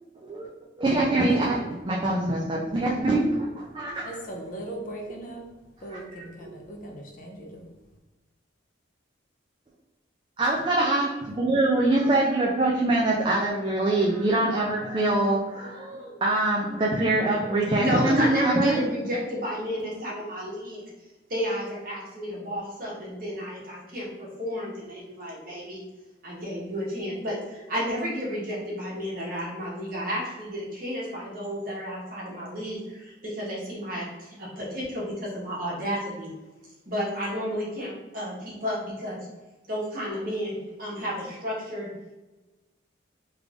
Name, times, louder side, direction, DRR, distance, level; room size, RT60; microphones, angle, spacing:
voice 1, 0.8-4.0 5.9-6.5 10.4-18.8, right 2 dB, 25° right, -4 dB, 0.4 m, -24 dB
voice 2, 4.0-5.4 5.8-7.7, right 1 dB, 45° left, 0 dB, 0.6 m, -39 dB
voice 3, 17.8-20.8 21.3-25.8 26.2-36.3 36.9-39.2 39.7-41.9, equal, 45° right, -6 dB, 1.3 m, -31 dB
3.3 x 2.5 x 3.4 m, 1.1 s
head